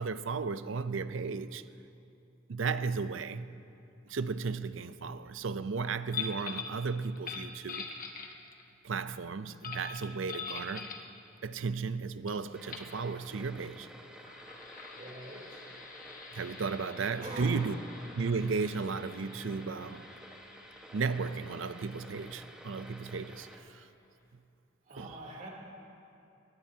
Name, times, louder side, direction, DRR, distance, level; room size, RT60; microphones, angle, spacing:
voice 1, 0.0-1.6 2.5-3.6 4.1-7.9 8.8-10.9 11.4-13.9 16.3-17.8 18.2-20.0 20.9-23.8 25.0-25.1, right 4 dB, 75° right, 0.5 m, -34 dB
sound 1, 6.1-6.8 7.2-8.7 9.6-11.1 12.3-12.4 12.7-12.9 14.0-23.3, left 5 dB, 45° left, 1.3 m, -45 dB
sound 2, 12.5-23.6, equal, 5° right, 1.3 m, -51 dB
voice 2, 14.9-15.7 17.2-17.6 24.8-25.5, right 2 dB, 40° right, 3.2 m, -44 dB
21.5 x 19.5 x 2.8 m
head